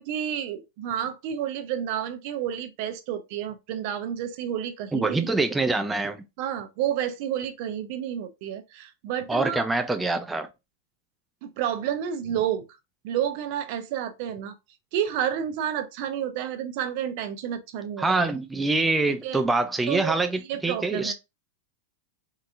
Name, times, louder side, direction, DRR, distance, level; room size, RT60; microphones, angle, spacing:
voice 1, 0.0-5.3 6.4-9.6 11.4-12.7 13.0-14.5 14.9-18.3 19.2-19.4 19.9-20.1 20.5-21.1, right 9 dB, 55° right, 0.6 m, -30 dB
voice 2, 4.9-6.3 9.3-10.5 18.0-21.1, right 3 dB, 10° right, 0.4 m, -25 dB
3.8 x 2.7 x 2.4 m
hypercardioid pair, 115°, 0 cm